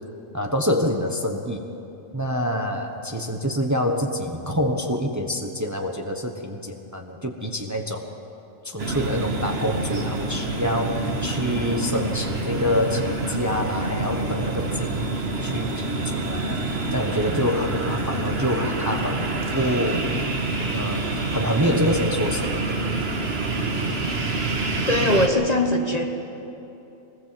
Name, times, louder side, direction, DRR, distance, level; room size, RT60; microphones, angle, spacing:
voice 1, 0.3-1.6 2.1-8.1 8.6-16.6 16.9-19.3 19.5-20.1 20.7-22.6, equal, 15° right, 3 dB, 1.1 m, -26 dB
sound 1, 8.8-25.3, right 2 dB, 50° right, 1.8 m, -27 dB
voice 2, 24.9-26.1, left 1 dB, 30° left, 3 dB, 1.3 m, -21 dB
23.0 x 19.0 x 7.6 m, 2.9 s
omnidirectional pair, 1.4 m